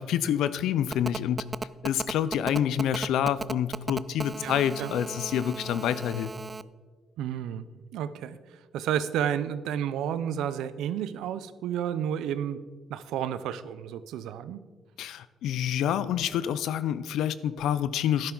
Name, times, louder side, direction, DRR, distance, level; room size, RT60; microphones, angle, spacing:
voice 1, 0.0-1.4 1.8-6.3 15.0-18.3, left 10 dB, 85° left, 15 dB, 0.5 m, -27 dB
Telephone, 0.9-6.6, right 3 dB, 25° right, 0.4 m, -35 dB
voice 2, 4.4-4.9 7.2-7.7 7.9-8.4 8.7-12.6 12.9-14.6, right 9 dB, 85° right, 14 dB, 0.5 m, -31 dB
12.0 x 10.5 x 3.9 m, 1.4 s
cardioid pair, 90°, 0 cm